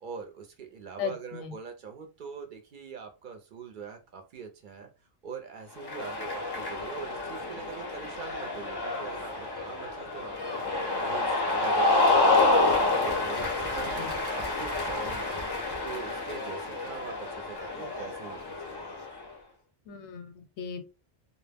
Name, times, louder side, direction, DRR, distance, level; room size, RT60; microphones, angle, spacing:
voice 1, 0.0-4.9 5.2-12.1 12.5-14.1 14.3-15.4 15.8-18.7, right 6 dB, 60° right, 5 dB, 0.6 m, -43 dB
voice 2, 1.0-1.5 13.8-14.1 19.9-20.8, left 6 dB, 90° left, 7 dB, 0.9 m, -37 dB
Cheering, 5.8-19.2, left 2 dB, 40° left, 0.4 m, -28 dB
2.2 x 2.0 x 3.3 m, 0.30 s
omnidirectional pair, 1.2 m